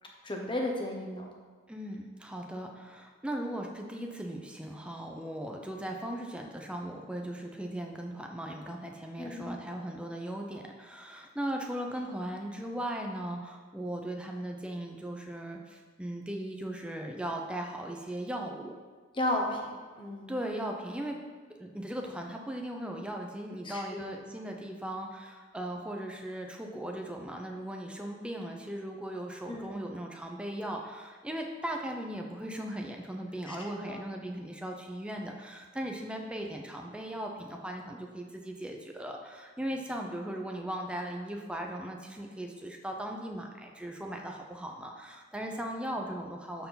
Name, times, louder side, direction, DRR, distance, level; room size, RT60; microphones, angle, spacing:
voice 1, 0.2-1.3 9.2-9.6 19.1-20.3 23.6-24.0 29.5-29.7 33.4-33.6 33.9-34.0, left 1 dB, 25° left, 0 dB, 1.1 m, -34 dB
voice 2, 1.7-18.8 20.3-21.2 21.6-46.7, right 1 dB, 5° right, 2 dB, 0.8 m, -38 dB
12.5 x 4.5 x 4.0 m, 1.5 s
head